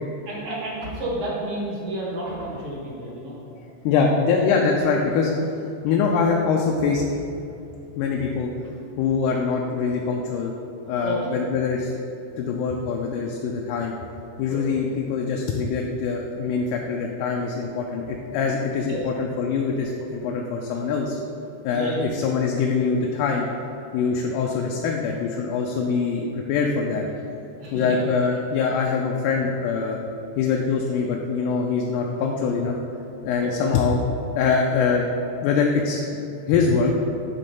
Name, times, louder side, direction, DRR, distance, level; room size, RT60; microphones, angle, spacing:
voice 1, 0.3-3.4 11.0-11.2 12.5-12.6 14.5-14.8 18.9-19.0 21.7-22.1 24.2-24.4 27.6-28.0 33.4-33.5, right 1 dB, 55° right, -4 dB, 1.5 m, -31 dB
voice 2, 3.8-5.3 5.8-7.0 7.4-7.5 8.0-8.5 9.0-10.5 10.9-12.1 12.4-13.9 14.4-21.2 21.6-23.5 23.9-27.1 27.7-30.0 30.4-32.8 33.2-34.0 34.4-35.1 35.4-36.1 36.5-36.9, left 5 dB, 80° left, 0 dB, 2.0 m, -23 dB
8.4 x 3.2 x 5.3 m, 2.7 s
omnidirectional pair, 3.7 m